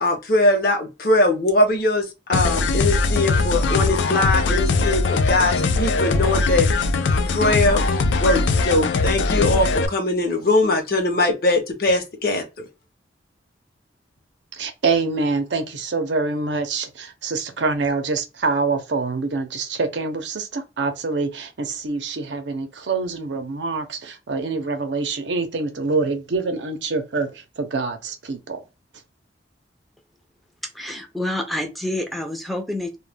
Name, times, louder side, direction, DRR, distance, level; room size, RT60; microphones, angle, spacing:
voice 1, 0.0-6.7 7.3-7.8 8.1-12.4, left 2 dB, 55° left, 0.7 m, -21 dB
sound 1, 2.3-9.9, left 3 dB, 80° left, 0.4 m, -20 dB
voice 2, 14.5-28.6, right 3 dB, 80° right, 0.6 m, -25 dB
voice 3, 30.7-33.0, left 1 dB, ahead, 0.5 m, -28 dB
2.2 x 2.2 x 3.2 m
head